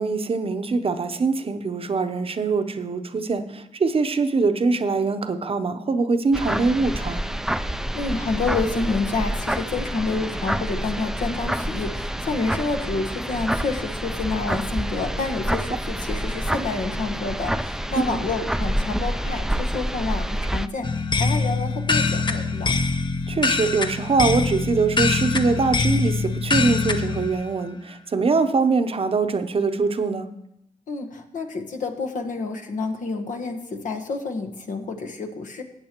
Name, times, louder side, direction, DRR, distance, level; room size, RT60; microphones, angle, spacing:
voice 1, 0.0-7.2 18.1-18.2 23.3-30.3, right 4 dB, 45° right, 9 dB, 0.8 m, -23 dB
sound 1, 6.3-20.7, right 1 dB, 5° right, 0.4 m, -28 dB
voice 2, 7.9-22.7 30.9-35.6, left 3 dB, 75° left, 6 dB, 1.2 m, -28 dB
sound 2, 20.8-27.3, left 4 dB, 35° left, 0.8 m, -23 dB
15.5 x 8.3 x 3.0 m, 0.80 s
cardioid pair, 65°, 14 cm